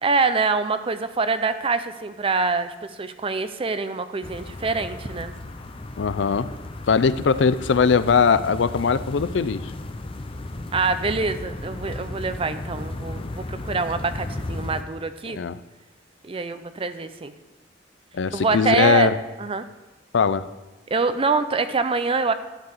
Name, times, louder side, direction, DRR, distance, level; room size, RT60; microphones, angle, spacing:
voice 1, 0.0-5.4 10.7-15.4 16.2-17.3 18.3-19.1 19.4-19.6 20.9-22.3, right 4 dB, 30° right, 11 dB, 0.6 m, -25 dB
sound 1, 4.2-14.8, left 2 dB, 30° left, 0.6 m, -35 dB
voice 2, 6.0-6.5 6.9-9.6 15.3-15.6 18.1-19.1 20.1-20.5, left 5 dB, 70° left, 14 dB, 0.5 m, -20 dB
11.5 x 4.7 x 7.9 m, 1.1 s
head